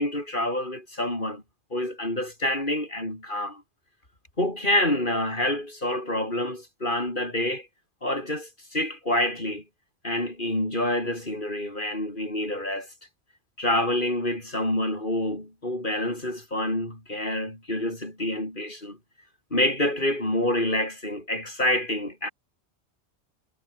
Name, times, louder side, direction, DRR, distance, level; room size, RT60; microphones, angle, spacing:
voice 1, 0.0-1.4 1.7-3.6 4.4-7.7 8.0-9.6 10.0-12.9 13.6-19.0 19.5-22.3, left 1 dB, 45° left, 7.2 m, -27 dB
omnidirectional pair, 1.2 m